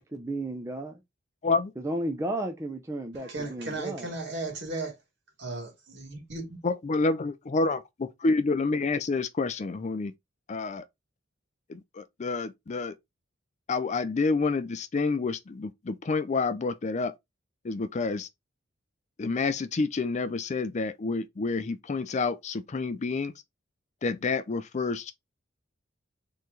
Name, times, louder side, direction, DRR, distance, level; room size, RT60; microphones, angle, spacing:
voice 1, 0.1-1.0 1.8-4.1, right 1 dB, 15° right, 0.5 m, -33 dB
voice 2, 3.1-5.0 5.4-6.6, right 2 dB, 60° right, 2.3 m, -36 dB
voice 3, 6.6-10.1 10.5-10.8 11.7-12.9 13.7-17.1 17.6-18.3 19.2-23.3 24.0-25.1, left 3 dB, 35° left, 0.4 m, -28 dB
4.5 x 3.1 x 3.8 m
head